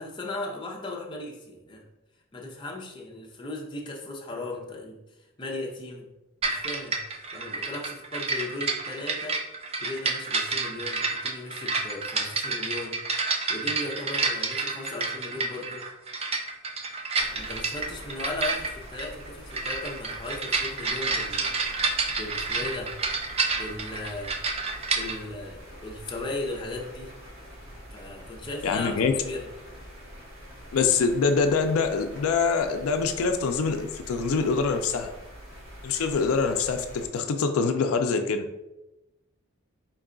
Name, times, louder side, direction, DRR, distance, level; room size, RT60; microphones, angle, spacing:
voice 1, 0.0-1.8 2.3-6.1 6.4-7.0 7.3-9.4 9.8-13.0 13.5-15.9 17.3-21.5 22.2-22.9 23.5-24.4 24.9-27.1 27.9-29.5, left 2 dB, 20° left, -1 dB, 0.6 m, -37 dB
sound 1, 6.4-25.2, right 4 dB, 30° right, 0.3 m, -29 dB
sound 2, 17.1-37.1, equal, 80° right, 1.1 m, -45 dB
voice 2, 28.6-29.1 30.7-35.1 35.8-38.5, left 5 dB, 85° left, 7 dB, 0.4 m, -24 dB
4.5 x 2.3 x 3.7 m, 0.96 s
head